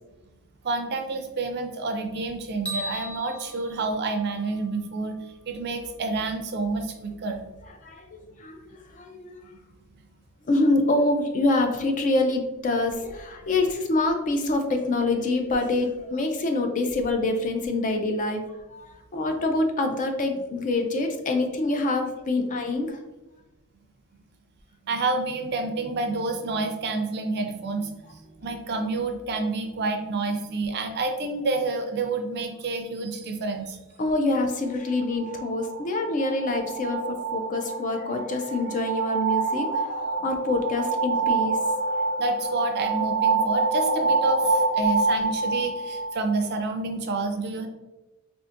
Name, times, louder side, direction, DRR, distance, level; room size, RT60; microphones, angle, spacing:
voice 1, 0.6-5.2 5.5-7.4 24.9-33.8 42.2-47.7, right 3 dB, 50° right, 5 dB, 0.4 m, -29 dB
sound 1, 2.7-4.9, right 1 dB, 5° left, 0.8 m, -37 dB
voice 2, 7.8-9.5 10.4-18.4 18.7-23.0 34.0-39.9 40.2-42.0, left 2 dB, 35° left, 5 dB, 0.4 m, -26 dB
sound 2, 34.8-46.5, right 3 dB, 75° left, 0.7 m, -26 dB
3.7 x 2.5 x 2.5 m, 1.1 s
head